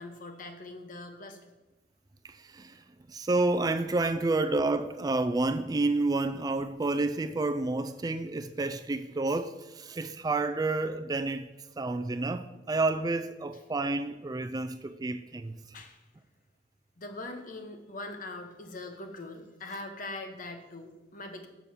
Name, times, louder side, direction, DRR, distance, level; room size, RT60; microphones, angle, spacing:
voice 1, 0.0-1.4 15.7-16.0 17.0-21.5, left 2 dB, 50° left, 1.1 m, -42 dB
voice 2, 3.1-11.5 11.8-15.5, right 2 dB, 20° right, 0.3 m, -29 dB
7.0 x 6.9 x 6.0 m
head